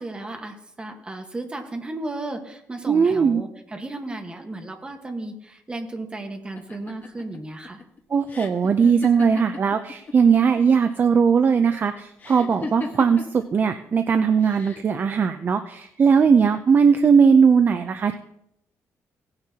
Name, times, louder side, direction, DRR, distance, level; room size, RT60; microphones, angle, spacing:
voice 1, 0.0-7.8, right 2 dB, 15° right, 4 dB, 1.3 m, -34 dB
voice 2, 2.9-3.4 8.1-18.2, right 6 dB, 35° right, 9 dB, 0.5 m, -19 dB
sound 1, 6.6-10.1 10.4-11.1 12.2-13.4 14.4-15.0, left 4 dB, 30° left, 1.3 m, -37 dB
17.5 x 9.7 x 2.8 m, 0.76 s
cardioid pair, 160°, 6 cm